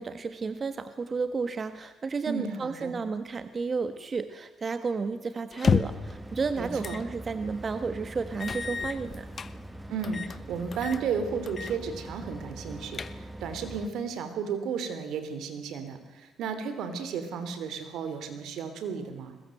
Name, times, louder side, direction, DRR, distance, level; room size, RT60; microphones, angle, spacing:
voice 1, 0.0-9.3, right 4 dB, 40° right, 10 dB, 1.3 m, -32 dB
voice 2, 2.3-3.0 6.5-7.0 9.9-19.3, right 6 dB, 80° right, 10 dB, 3.3 m, -33 dB
sound 1, 5.5-6.1 6.8-7.1 7.5-7.6 8.4-9.5 10.0-10.4 10.7-11.0 11.5-11.8 12.1-12.2 12.7-13.5, left 5 dB, 40° left, 1.0 m, -30 dB
sound 2, 5.8-13.9, right 1 dB, 10° right, 1.9 m, -43 dB
22.0 x 20.0 x 7.9 m, 1.2 s
cardioid pair, 90°, 0 cm